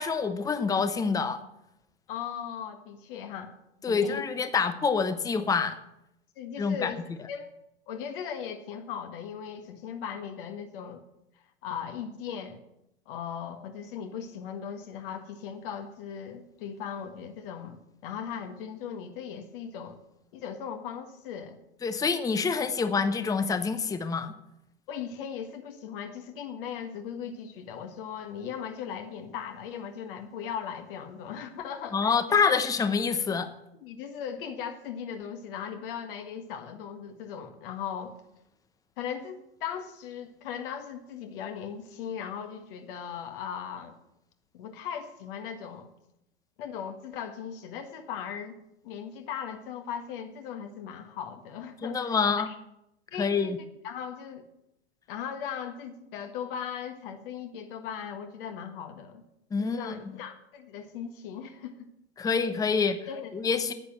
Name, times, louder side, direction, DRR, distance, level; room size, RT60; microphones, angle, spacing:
voice 1, 0.0-1.4 3.8-5.8 6.6-6.9 21.8-24.3 31.9-33.5 51.8-52.5 53.2-53.6 59.5-59.9 62.2-63.0 63.3-63.7, left 5 dB, 10° left, 11 dB, 0.8 m, -26 dB
voice 2, 2.1-3.5 3.9-4.2 6.4-7.5 7.9-11.0 11.6-12.6 13.1-17.8 18.0-20.0 20.3-21.6 24.9-32.1 33.8-38.1 39.0-43.9 44.5-45.9 46.6-48.6 48.8-52.2 52.5-52.6 53.1-53.6 53.8-54.4 55.1-59.2 59.6-61.9 63.1-63.3, left 8 dB, 55° left, 6 dB, 1.6 m, -38 dB
9.9 x 8.8 x 7.3 m, 0.83 s
hypercardioid pair, 100°, 32 cm